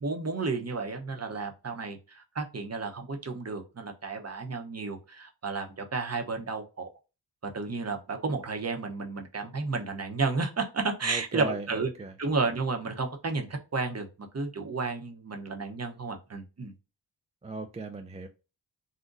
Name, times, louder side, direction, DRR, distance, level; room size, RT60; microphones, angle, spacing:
voice 1, 0.0-6.9 7.5-11.9 12.2-14.1 14.3-16.7, right 4 dB, 35° right, 0.8 m, -32 dB
voice 2, 11.0-12.1 17.4-18.3, right 2 dB, 15° right, 0.3 m, -37 dB
3.8 x 2.1 x 2.5 m
wide cardioid pair, 55°, 43 cm